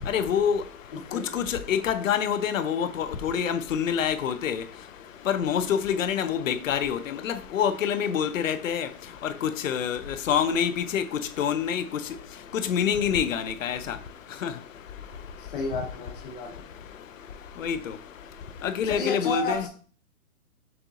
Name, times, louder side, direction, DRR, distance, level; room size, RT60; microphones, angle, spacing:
voice 1, 0.1-0.6 1.1-4.6 5.3-8.9 9.2-10.0 10.3-11.0 11.4-11.8 12.5-14.0 14.4-14.5 17.6-17.8 18.6-19.6, left 8 dB, 65° left, 0.6 m, -26 dB
voice 2, 0.9-1.3 15.4-16.7 18.8-19.7, left 3 dB, 40° left, 1.2 m, -32 dB
6.5 x 2.6 x 2.8 m
hypercardioid pair, 180°, 42 cm